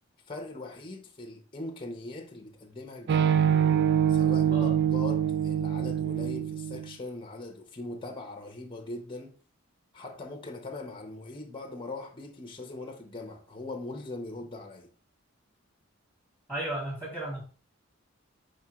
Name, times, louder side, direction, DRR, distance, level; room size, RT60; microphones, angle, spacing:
voice 1, 0.3-3.3 4.1-9.4 9.9-14.9, left 2 dB, 25° left, 0.7 m, -41 dB
sound 1, 3.1-6.9, right 9 dB, 55° right, 0.3 m, -25 dB
voice 2, 4.5-4.8 16.5-17.4, right 1 dB, 10° right, 1.9 m, -34 dB
5.0 x 3.6 x 2.8 m
head